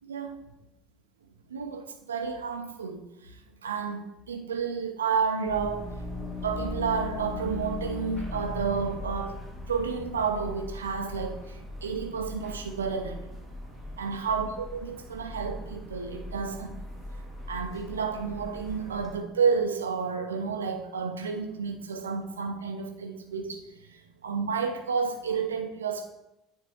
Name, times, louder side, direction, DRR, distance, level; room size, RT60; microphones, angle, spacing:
voice 1, 0.0-0.3 1.5-5.9 6.4-13.3 14.0-16.8 17.1-26.1, right 5 dB, 80° right, 5 dB, 0.6 m, -31 dB
sound 1, 5.5-19.2, left 2 dB, 15° left, 1.7 m, -39 dB
9.6 x 3.6 x 3.1 m, 0.88 s
figure-of-eight pair, 65°, 0 cm